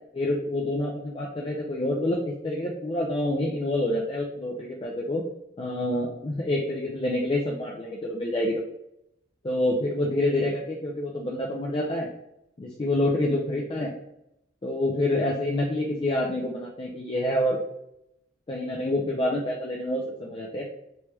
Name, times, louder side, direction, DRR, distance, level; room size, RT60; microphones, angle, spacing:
voice 1, 0.1-5.2 5.6-8.6 9.4-12.1 12.6-13.9 14.6-17.6 18.5-20.6, left 1 dB, 25° left, -2 dB, 0.4 m, -27 dB
3.3 x 3.0 x 3.1 m, 0.81 s
head